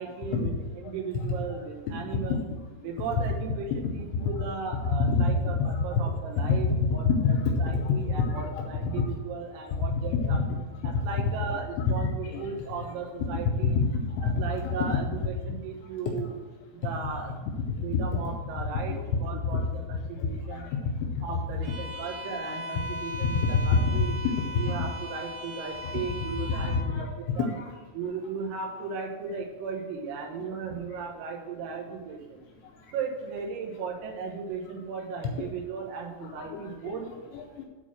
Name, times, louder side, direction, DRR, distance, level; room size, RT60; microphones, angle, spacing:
voice 1, 0.0-2.5 2.8-7.1 7.6-10.4 10.8-13.9 14.2-16.3 16.7-17.3 17.8-20.7 21.2-24.1 24.6-27.5 27.9-32.4 32.9-37.1, right 5 dB, 85° right, 0 dB, 3.9 m, -36 dB
voice 2, 5.0-6.0 6.4-6.8 7.0-9.0 9.9-10.4 11.3-11.5 11.9-12.5 13.6-14.9 16.8-16.9 17.4-17.5 17.9-18.0 18.9-19.0 19.5-19.6 20.2-20.3 20.6-20.7 23.2-23.5 24.0-24.3 24.6-24.8 25.8-25.9 26.5-27.0 27.5-27.6 36.2-36.6 36.9-37.7, left 4 dB, 80° left, 1 dB, 2.7 m, -27 dB
Bowed string instrument, 21.6-26.9, left 2 dB, 60° right, 3.2 m, -38 dB
8.9 x 4.2 x 6.3 m, 1.3 s
omnidirectional pair, 5.9 m